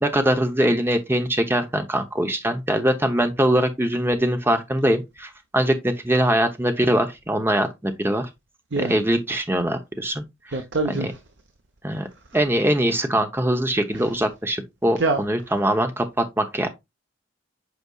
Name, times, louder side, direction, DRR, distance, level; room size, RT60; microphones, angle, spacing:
voice 1, 0.0-8.3 8.8-10.2 11.0-11.1 11.8-12.1 12.3-16.7, right 1 dB, 10° right, 0.9 m, -22 dB
voice 2, 10.5-11.1 15.0-15.2, right 3 dB, 60° right, 0.9 m, -23 dB
8.2 x 5.1 x 2.4 m
head